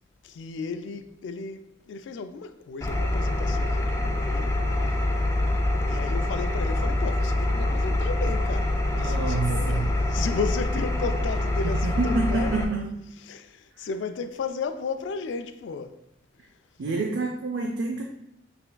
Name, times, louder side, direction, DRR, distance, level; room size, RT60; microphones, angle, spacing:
voice 1, 0.2-4.5 5.8-9.8 10.1-12.5 13.3-16.0, left 4 dB, 85° left, 0.3 m, -34 dB
Engine, 2.8-12.6, left 1 dB, 15° left, 0.4 m, -25 dB
voice 2, 9.0-9.9 11.6-13.1 13.8-13.9 16.8-18.0, right 3 dB, 75° right, 0.4 m, -28 dB
5.7 x 3.5 x 2.2 m
head